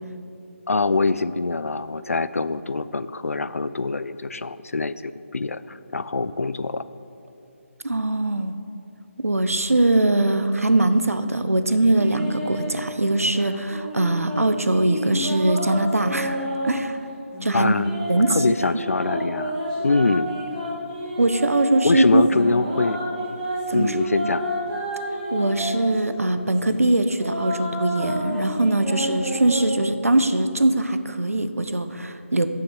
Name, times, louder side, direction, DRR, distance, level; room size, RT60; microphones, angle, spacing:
voice 1, 0.7-6.8 17.5-17.9 18.3-19.6 19.8-20.3 21.8-23.0 23.7-24.4, left 3 dB, 80° left, 15 dB, 0.4 m, -24 dB
voice 2, 7.8-8.5 9.2-17.0 17.4-17.8 18.1-18.4 21.2-22.2 23.7-24.0 25.3-32.5, right 2 dB, 90° right, 10 dB, 0.6 m, -21 dB
sound 1, 12.0-12.7 13.3-16.8 17.3-21.6 22.1-26.0 26.5-29.6, equal, 15° right, 2.1 m, -30 dB
6.9 x 6.5 x 6.3 m, 2.8 s
figure-of-eight pair, 155°, 8 cm